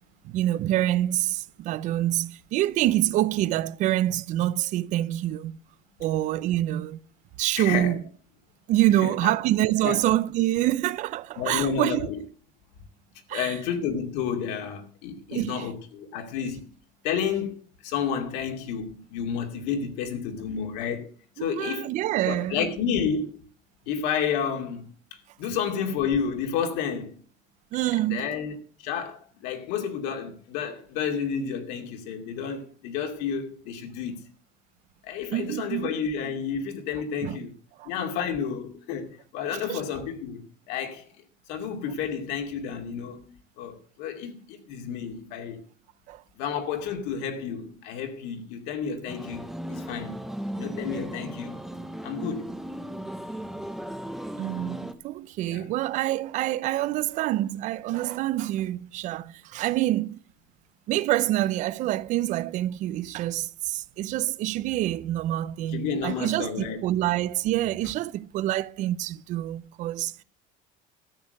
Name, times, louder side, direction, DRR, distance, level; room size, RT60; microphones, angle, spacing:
voice 1, 0.2-5.6 6.0-7.0 7.4-8.0 8.7-12.1 13.3-13.5 15.3-15.7 21.4-22.7 27.7-28.3 35.3-35.9 37.2-37.4 37.8-37.9 39.5-39.8 46.1-46.2 54.4-60.2 60.9-70.2, right 14 dB, 45° right, 0.6 m, -26 dB
voice 2, 7.6-8.0 9.0-9.3 9.8-10.0 11.4-12.2 13.3-16.7 17.0-21.1 21.4-21.9 22.3-23.4 23.9-24.9 25.4-27.2 28.0-34.3 35.0-37.5 37.8-41.1 41.5-45.6 46.4-50.1 50.5-51.7 52.0-52.5 55.5-55.6 65.7-66.9, left 7 dB, 70° left, 2.4 m, -31 dB
sound 1, 49.1-54.9, right 1 dB, ahead, 0.7 m, -36 dB
13.0 x 8.4 x 6.5 m
cardioid pair, 175°, 18 cm